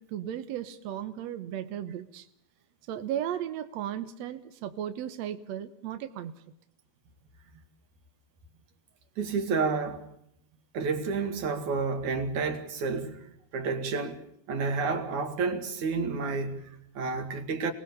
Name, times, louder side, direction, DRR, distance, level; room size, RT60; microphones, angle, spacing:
voice 1, 0.0-2.3 2.9-6.3, right 10 dB, 75° right, 1.6 m, -35 dB
voice 2, 9.2-10.1 10.7-13.3 13.5-14.2 14.5-17.7, right 4 dB, 55° right, 3.1 m, -30 dB
29.5 x 19.5 x 6.9 m
omnidirectional pair, 4.5 m